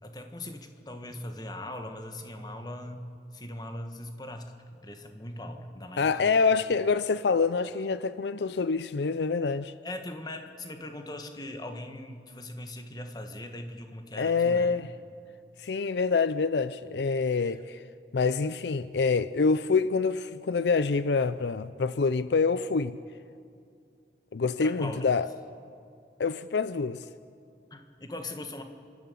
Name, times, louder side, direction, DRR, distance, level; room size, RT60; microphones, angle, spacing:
voice 1, 0.0-3.1 3.3-4.5 4.8-6.4 9.8-14.7 17.4-17.5 24.6-25.0 27.7-28.6, left 1 dB, 20° left, 1.5 m, -40 dB
voice 2, 6.0-9.7 14.2-14.9 15.6-17.8 18.1-23.0 24.3-25.3 26.2-27.1, left 4 dB, 75° left, 0.5 m, -26 dB
29.0 x 13.0 x 8.5 m
head